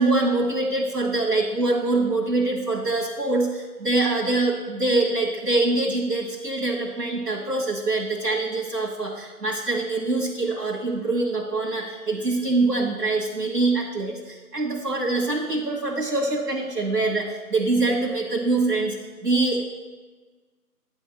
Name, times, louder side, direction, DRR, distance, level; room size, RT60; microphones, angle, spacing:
voice 1, 0.0-19.0 19.2-19.6, right 2 dB, 80° right, -3 dB, 1.6 m, -24 dB
9.9 x 3.6 x 7.1 m, 1.3 s
figure-of-eight pair, 155°, 47 cm